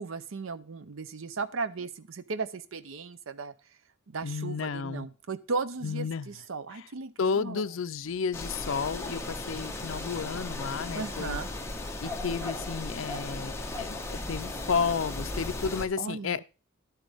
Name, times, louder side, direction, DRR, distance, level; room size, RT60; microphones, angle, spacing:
voice 1, 0.0-3.5 4.1-7.6 10.9-11.5 16.0-16.4, right 4 dB, 70° right, 0.6 m, -36 dB
voice 2, 4.2-5.1 5.8-6.3 6.7-6.8 7.2-11.4 12.0-16.4, left 5 dB, 70° left, 0.5 m, -32 dB
sound 1, 8.3-15.9, left 2 dB, 15° left, 1.1 m, -36 dB
11.0 x 9.0 x 3.5 m
head